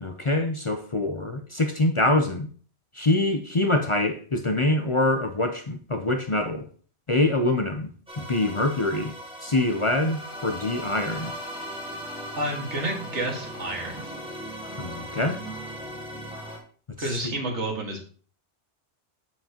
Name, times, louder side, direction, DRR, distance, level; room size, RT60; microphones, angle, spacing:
voice 1, 0.0-2.5 2.9-6.7 7.1-7.9 8.2-9.1 9.4-11.3 14.8-15.4 17.0-17.3, left 2 dB, 35° left, 0.6 m, -25 dB
sound 1, 8.1-16.6, equal, 5° right, 1.7 m, -38 dB
voice 2, 12.4-14.0 17.0-18.0, right 1 dB, 90° right, 2.2 m, -30 dB
8.0 x 7.4 x 2.9 m
omnidirectional pair, 1.2 m